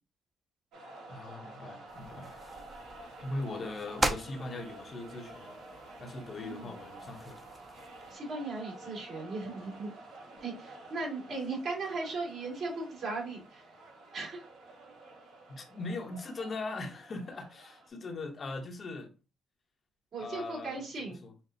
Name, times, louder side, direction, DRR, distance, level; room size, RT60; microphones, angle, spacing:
sound 1, 0.7-17.9, right 2 dB, 80° right, 1.6 m, -50 dB
voice 1, 1.1-2.3 3.2-5.5 6.0-7.4 15.5-19.1 20.2-20.8 21.2-21.3, left 2 dB, 50° left, 0.9 m, -40 dB
sound 2, 1.9-8.1, right 1 dB, 15° right, 0.8 m, -39 dB
voice 2, 6.4-6.8 8.1-9.9 10.4-13.7 14.1-14.5 20.1-21.2, right 3 dB, 60° right, 2.4 m, -37 dB
5.9 x 2.2 x 2.7 m
supercardioid pair, 70°, 0 cm